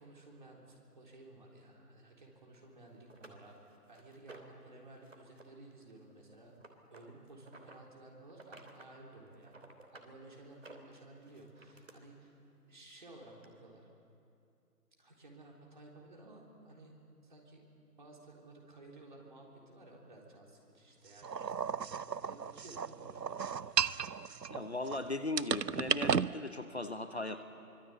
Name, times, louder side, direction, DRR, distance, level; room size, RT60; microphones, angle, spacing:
voice 1, 0.0-6.5 6.9-9.5 9.9-12.4 12.7-13.9 15.0-16.9 17.2-17.6 18.0-21.8 22.3-23.6, right 2 dB, 30° right, -1 dB, 3.8 m, -55 dB
sound 1, 2.5-2.6 3.1-4.6 5.0-5.4 5.7-7.8 8.3-8.9 9.3-10.1 10.5-11.9 12.9-13.0 13.4-13.5, right 3 dB, 50° right, 3.1 m, -55 dB
sound 2, 21.2-25.0 25.4-26.3, right 6 dB, 90° right, 0.8 m, -34 dB
voice 2, 24.5-27.4, left 2 dB, 45° left, 9 dB, 1.0 m, -38 dB
24.5 x 22.5 x 8.5 m, 2.6 s
figure-of-eight pair, 165°, 48 cm